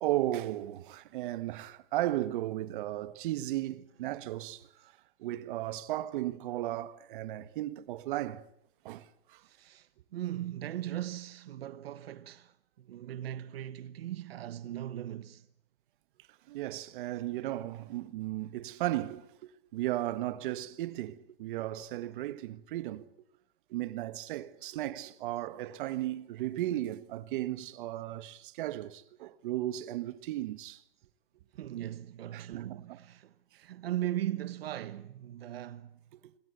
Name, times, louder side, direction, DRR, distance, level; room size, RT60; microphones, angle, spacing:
voice 1, 0.0-4.9 5.2-8.4 8.8-9.4 16.5-23.0 23.7-30.8 32.3-33.0 36.1-36.3, right 14 dB, 60° right, 1.5 m, -35 dB
voice 2, 9.4-15.5 31.6-36.0, right 12 dB, 85° right, 1.4 m, -39 dB
26.5 x 20.5 x 8.1 m
supercardioid pair, 150°, 29 cm